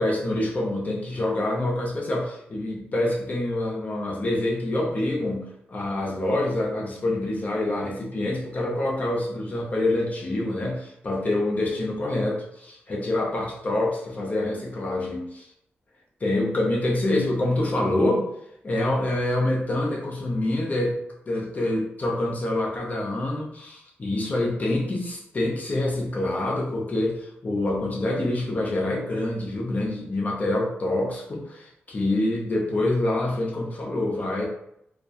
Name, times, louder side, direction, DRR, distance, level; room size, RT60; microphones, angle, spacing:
voice 1, 0.0-15.5 16.2-18.3 18.6-21.0 21.3-34.4, left 1 dB, 40° left, -2 dB, 0.5 m, -26 dB
2.3 x 2.1 x 2.5 m, 0.75 s
wide cardioid pair, 115°, 4 cm